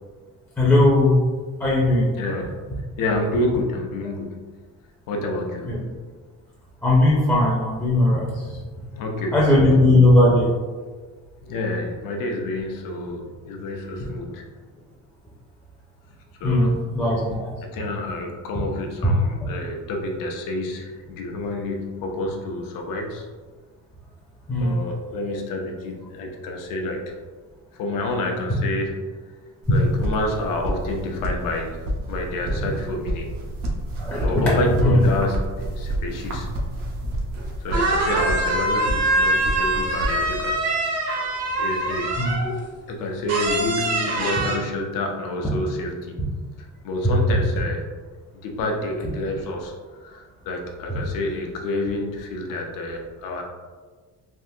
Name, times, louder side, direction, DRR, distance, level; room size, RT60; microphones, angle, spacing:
voice 1, 0.6-1.1 1.6-2.1 5.7-5.8 6.8-8.6 9.3-10.5 16.4-17.5 24.5-24.8 32.6-32.7 34.0-34.3 34.8-35.0 42.2-42.3, left 1 dB, 5° left, -6 dB, 0.4 m, -18 dB
voice 2, 2.1-4.5 5.1-5.9 8.9-9.6 11.4-14.4 16.4-17.1 17.6-23.3 24.6-27.1 27.7-29.1 29.7-33.3 34.2-36.5 37.6-40.6 41.5-42.2 42.9-46.2 46.6-47.9 48.4-53.4, left 2 dB, 85° left, 1 dB, 0.7 m, -29 dB
sound 1, 29.6-40.5, right 1 dB, 85° right, 0.7 m, -30 dB
sound 2, 37.4-37.5 37.7-42.6 43.3-44.6, right 2 dB, 50° right, 0.6 m, -24 dB
3.5 x 2.5 x 2.7 m, 1.4 s
cardioid pair, 175°, 32 cm